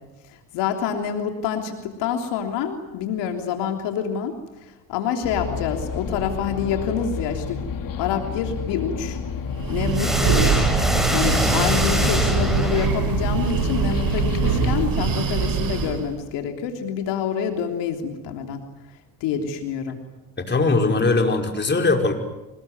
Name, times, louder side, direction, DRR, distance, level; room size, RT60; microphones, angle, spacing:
voice 1, 0.5-4.3 4.9-7.6 8.0-9.2 9.7-10.7 11.1-18.6 19.2-20.0, left 7 dB, 85° left, 4 dB, 3.4 m, -27 dB
sound 1, 5.2-14.9, left 6 dB, 50° left, 3.0 m, -30 dB
Breathing, 9.5-16.1, right 6 dB, 55° right, 5.1 m, -23 dB
sound 2, 9.9-13.3, equal, ahead, 6.2 m, -24 dB
voice 2, 20.4-22.1, left 3 dB, 25° left, 3 dB, 5.4 m, -20 dB
26.0 x 21.0 x 9.5 m, 1.0 s
supercardioid pair, 85°, 41 cm